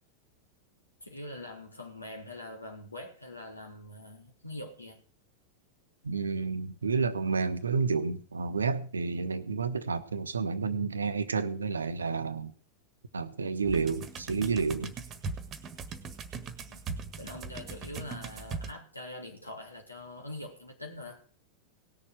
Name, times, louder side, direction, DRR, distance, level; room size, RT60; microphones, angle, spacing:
voice 1, 1.0-5.0 16.7-16.8 17.2-21.2, left 1 dB, 80° left, 2 dB, 3.4 m, -43 dB
voice 2, 6.0-12.5 13.1-14.9, right 5 dB, 75° right, 12 dB, 1.0 m, -30 dB
sound 1, 13.7-18.7, right 4 dB, 25° right, 1.6 m, -40 dB
18.0 x 7.0 x 6.4 m, 0.40 s
figure-of-eight pair, 90°, 0 cm